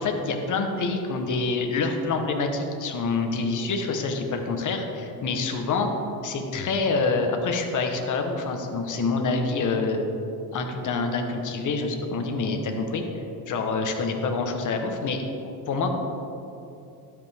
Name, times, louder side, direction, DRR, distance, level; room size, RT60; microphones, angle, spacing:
voice 1, 0.0-5.9 6.2-10.1 10.5-13.0 13.5-15.2 15.4-16.0, left 3 dB, 45° left, 4 dB, 1.1 m, -26 dB
12.0 x 5.2 x 3.5 m, 2.7 s
cardioid pair, 90°, 41 cm